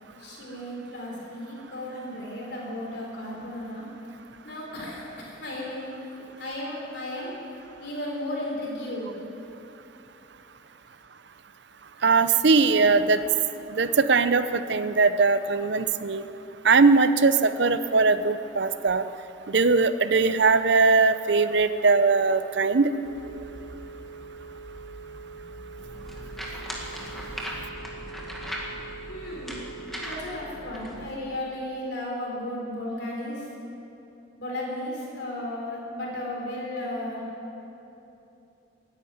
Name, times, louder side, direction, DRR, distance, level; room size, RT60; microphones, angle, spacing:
voice 1, 0.2-3.8 4.4-7.3 7.8-9.2 29.1-29.6 30.0-33.4 34.4-37.2, left 1 dB, 55° left, -3 dB, 4.0 m, -34 dB
voice 2, 12.0-13.2 13.8-16.2 16.6-19.0 19.5-22.9, right 4 dB, 60° right, 12 dB, 0.6 m, -20 dB
Telephone, 23.1-30.1, right 4 dB, 20° left, 1.0 m, -43 dB
sound 1, 25.8-31.1, equal, ahead, 1.7 m, -38 dB
15.0 x 9.8 x 9.2 m, 3.0 s
head